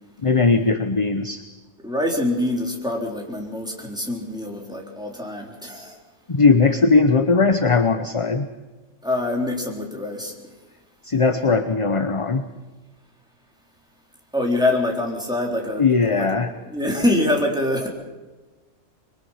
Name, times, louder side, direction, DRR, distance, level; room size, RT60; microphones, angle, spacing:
voice 1, 0.2-1.4 6.3-8.5 11.0-12.4 15.8-16.5, left 4 dB, 30° left, 9 dB, 0.8 m, -19 dB
voice 2, 1.8-6.0 9.0-10.3 14.3-15.9 16.1-16.4 16.7-17.9, left 1 dB, 5° right, -1 dB, 3.8 m, -24 dB
25.0 x 22.5 x 5.8 m, 1.2 s
omnidirectional pair, 1.3 m